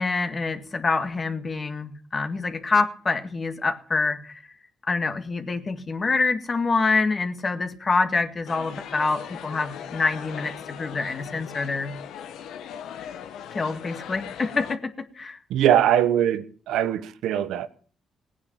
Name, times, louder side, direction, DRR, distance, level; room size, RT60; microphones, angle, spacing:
voice 1, 0.0-4.4 4.9-11.9 13.5-15.4, left 4 dB, 35° left, 1.9 m, -26 dB
sound 1, 8.5-14.8, left 9 dB, 80° left, 1.2 m, -39 dB
voice 2, 15.5-17.7, right 10 dB, 85° right, 1.1 m, -21 dB
18.0 x 9.5 x 7.4 m
cardioid pair, 90°, 0 cm